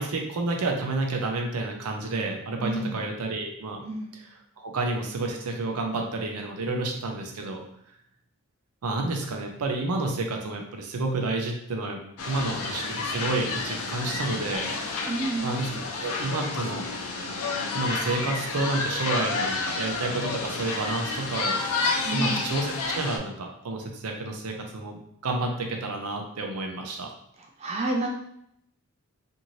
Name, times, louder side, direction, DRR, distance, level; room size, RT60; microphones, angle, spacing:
voice 1, 0.0-3.8 4.6-7.6 8.8-12.0 12.3-14.7 15.4-15.7 16.0-16.8 17.7-27.1, right 2 dB, 90° right, 2 dB, 0.6 m, -30 dB
voice 2, 2.6-3.1 3.8-4.2 15.1-15.5 22.0-22.5 27.4-28.1, right 2 dB, 30° right, 0 dB, 0.3 m, -30 dB
sound 1, 12.2-23.2, left 3 dB, 80° left, 0.5 m, -30 dB
2.6 x 2.6 x 3.0 m, 0.72 s
head